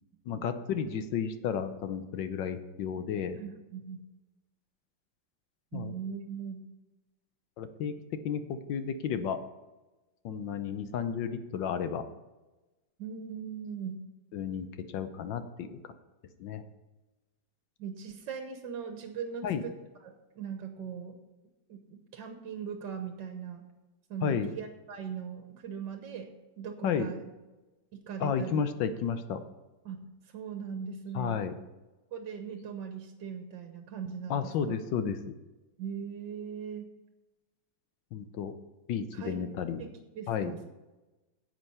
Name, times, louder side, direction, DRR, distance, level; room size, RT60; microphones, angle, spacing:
voice 1, 0.3-3.4 5.7-5.9 7.6-9.4 10.2-12.0 14.3-15.8 16.4-16.6 19.4-19.6 24.2-24.5 26.8-27.1 28.2-29.4 31.1-31.5 34.3-35.3 38.1-38.5 38.9-39.8 40.3-40.5, left 7 dB, 75° left, 10 dB, 1.4 m, -32 dB
voice 2, 3.3-4.0 5.7-6.6 13.0-14.0 17.8-19.7 20.0-21.2 21.7-23.7 24.1-27.2 27.9-28.7 29.8-31.5 32.1-34.8 35.8-36.9 39.1-39.4 39.8-40.6, right 7 dB, 70° right, 6 dB, 1.6 m, -40 dB
9.9 x 7.8 x 5.5 m, 1.1 s
omnidirectional pair, 2.1 m